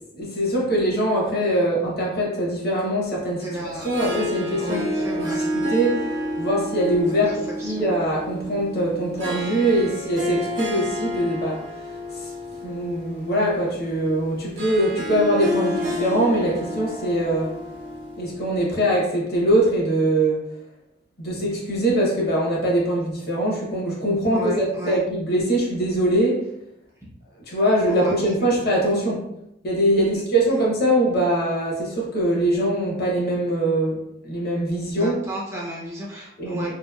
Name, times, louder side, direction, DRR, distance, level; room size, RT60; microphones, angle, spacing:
voice 1, 0.2-3.5 3.8-6.1 6.4-11.6 12.6-17.6 18.2-20.4 21.2-26.5 27.5-29.2 29.6-35.2 36.4-36.7, right 1 dB, 50° left, -3 dB, 0.8 m, -22 dB
voice 2, 3.4-3.9 4.6-5.4 7.1-7.9 24.3-25.0 27.9-28.5 28.9-29.1 30.1-30.2 34.9-36.7, right 1 dB, 15° right, -4 dB, 0.5 m, -33 dB
Harp, 3.5-18.8, left 1 dB, 70° right, 0.8 m, -30 dB
2.9 x 2.5 x 2.3 m, 0.81 s
head